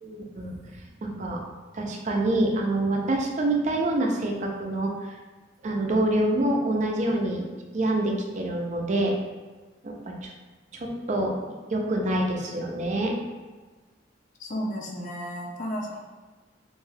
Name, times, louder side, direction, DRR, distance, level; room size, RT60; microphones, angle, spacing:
voice 1, 0.0-0.5 1.0-1.4 1.7-4.9 5.6-7.5 7.7-9.1 9.8-10.3 10.7-11.3 11.7-13.1, right 1 dB, 40° right, 1 dB, 0.4 m, -26 dB
voice 2, 14.4-16.0, equal, 45° left, 0 dB, 0.4 m, -33 dB
2.6 x 2.3 x 3.3 m, 1.3 s
head